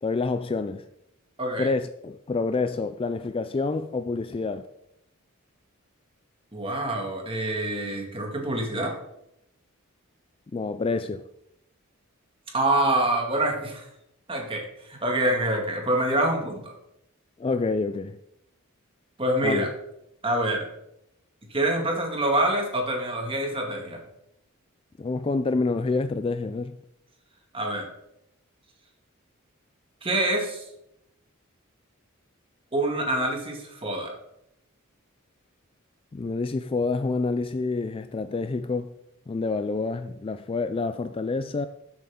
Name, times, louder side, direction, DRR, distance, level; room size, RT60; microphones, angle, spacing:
voice 1, 0.0-0.8 1.6-4.7 10.5-11.2 17.4-18.2 19.4-19.7 25.0-26.8 36.1-38.9 39.3-41.7, left 3 dB, 25° left, 0.3 m, -28 dB
voice 2, 1.4-1.7 6.5-8.9 12.5-13.9 14.3-16.7 19.2-19.7 20.2-20.7 21.5-24.0 27.5-27.9 30.0-30.7 32.7-34.1, right 1 dB, 25° right, 2.0 m, -26 dB
13.0 x 7.6 x 3.7 m
head